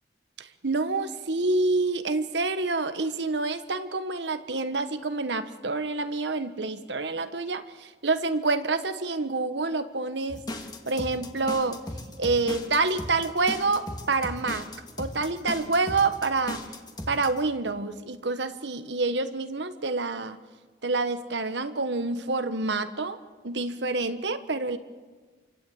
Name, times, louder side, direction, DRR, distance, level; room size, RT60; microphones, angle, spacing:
voice 1, 0.4-10.4 10.8-11.8 12.2-14.6 15.0-16.6 17.1-20.4 20.8-23.2 23.4-24.8, right 3 dB, 70° right, 10 dB, 1.3 m, -27 dB
sound 1, 10.3-17.4, left 1 dB, 20° left, 2.0 m, -37 dB
28.0 x 24.0 x 8.7 m, 1.4 s
head